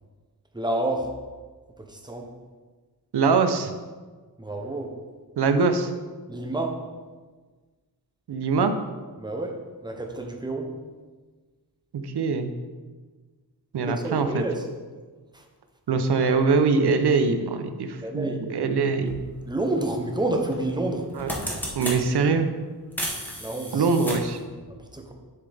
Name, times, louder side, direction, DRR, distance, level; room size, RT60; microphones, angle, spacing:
voice 1, 0.5-1.2 1.8-2.3 4.4-5.0 6.3-6.8 9.2-10.7 13.9-14.7 15.3-15.5 18.0-18.4 19.5-21.1 23.4-23.9 24.7-25.1, right 2 dB, 10° right, 3 dB, 0.7 m, -29 dB
voice 2, 3.1-3.7 5.4-5.9 8.3-8.7 11.9-12.5 13.7-14.4 15.9-19.2 21.2-21.3 21.8-22.5 23.7-24.4, right 4 dB, 85° right, 8 dB, 0.7 m, -23 dB
sound 1, 19.1-19.2 20.5-20.7 21.0-22.0 22.9-24.4, equal, 5° left, 1.0 m, -32 dB
7.4 x 6.8 x 3.4 m, 1.4 s
wide cardioid pair, 175°, 39 cm